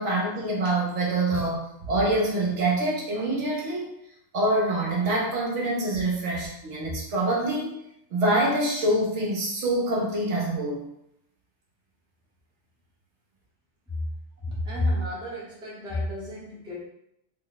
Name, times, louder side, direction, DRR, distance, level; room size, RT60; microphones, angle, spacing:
voice 1, 0.0-3.9 4.3-7.8 8.1-10.8, right 1 dB, 65° right, -2 dB, 1.1 m, -25 dB
voice 2, 14.5-16.8, left 1 dB, 5° right, -5 dB, 0.7 m, -30 dB
3.6 x 2.1 x 3.9 m, 0.77 s
omnidirectional pair, 1.4 m